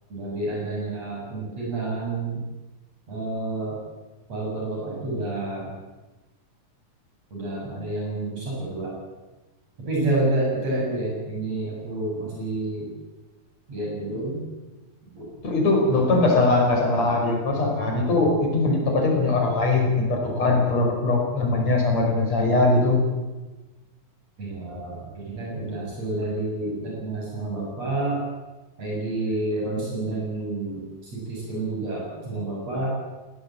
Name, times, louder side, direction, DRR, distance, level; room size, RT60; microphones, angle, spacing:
voice 1, 0.1-2.4 3.1-3.8 4.3-5.7 7.3-8.9 9.8-12.9 13.7-14.4 15.2-15.3 24.4-28.2 28.8-32.9, right 2 dB, 45° right, -3 dB, 8.1 m, -29 dB
voice 2, 15.4-23.0, left 2 dB, 45° left, 1 dB, 6.3 m, -21 dB
19.5 x 19.5 x 8.7 m, 1.1 s
omnidirectional pair, 4.1 m